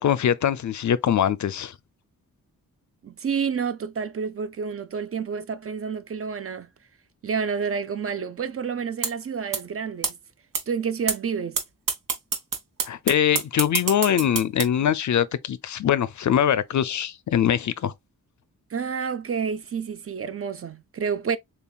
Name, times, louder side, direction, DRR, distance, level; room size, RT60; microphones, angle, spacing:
voice 1, 0.0-1.7 12.8-17.9, left 9 dB, 55° left, 0.4 m, -23 dB
voice 2, 3.0-6.7 7.2-10.2 10.7-11.6 18.7-21.4, right 6 dB, 40° right, 0.5 m, -29 dB
sound 1, 9.0-9.1 9.5-9.6 10.0-10.1 10.5-10.6 11.1-11.2 11.6-11.7 11.9-14.6, right 6 dB, 65° right, 0.9 m, -24 dB
6.8 x 2.3 x 2.3 m
wide cardioid pair, 100°, 34 cm